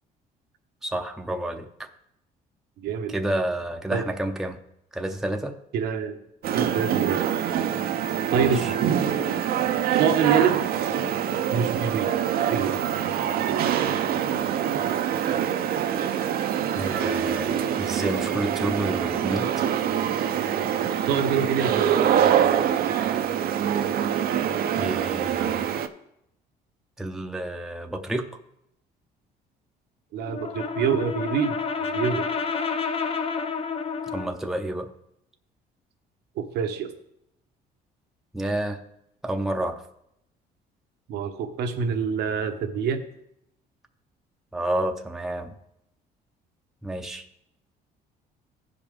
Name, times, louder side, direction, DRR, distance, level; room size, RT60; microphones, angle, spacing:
voice 1, 0.8-1.9 3.1-4.6 4.9-5.6 8.4-8.7 16.7-19.6 24.7-25.7 27.0-28.3 34.1-34.9 38.3-38.8 39.2-39.8 44.5-45.5 46.8-47.3, right 1 dB, ahead, 3 dB, 0.6 m, -30 dB
voice 2, 2.8-3.2 3.9-4.1 5.7-6.2 6.5-7.3 8.3-8.9 10.0-10.9 11.5-12.2 12.5-12.9 20.8-22.0 30.1-32.3 36.3-36.9 41.1-43.0, right 7 dB, 75° right, 7 dB, 1.0 m, -26 dB
sound 1, 6.4-25.9, right 9 dB, 60° right, 0.6 m, -25 dB
Brass instrument, 30.2-34.4, left 5 dB, 35° left, 0.7 m, -29 dB
15.5 x 5.2 x 3.4 m, 0.79 s
cardioid pair, 110°, 17 cm